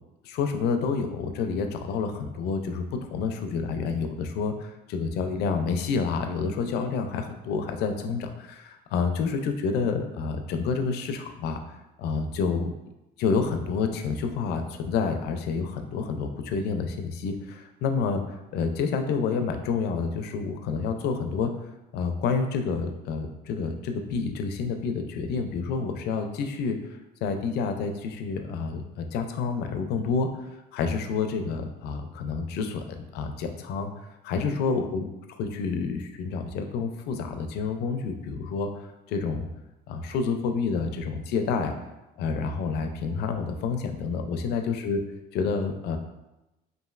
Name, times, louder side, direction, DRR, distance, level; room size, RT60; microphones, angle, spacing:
voice 1, 0.2-2.8 3.1-11.6 12.0-12.7 13.2-21.5 21.9-30.3 30.7-33.9 34.2-35.1 35.4-38.7 39.1-39.5 39.9-41.7 42.2-45.0 45.3-46.0, left 5 dB, 75° left, 6 dB, 0.4 m, -29 dB
3.0 x 2.6 x 2.4 m, 0.96 s
cardioid pair, 110°, 17 cm